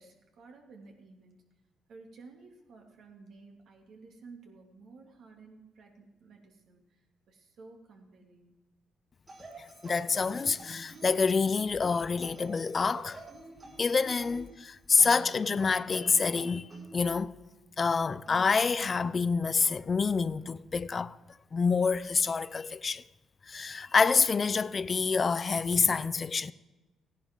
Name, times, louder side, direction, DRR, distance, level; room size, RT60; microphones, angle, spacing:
voice 1, 0.0-1.4 1.9-8.6, right 4 dB, 70° right, 2.5 m, -53 dB
sound 1, 9.3-11.5 12.2-14.6 15.0-17.2 18.3-18.5, right 3 dB, 35° right, 4.5 m, -48 dB
voice 2, 9.8-13.2 13.8-16.7 16.9-17.4 17.8-21.2 21.5-23.0 23.5-26.5, left 5 dB, 35° left, 0.4 m, -27 dB
16.5 x 11.0 x 3.7 m
cardioid pair, 90°, 0 cm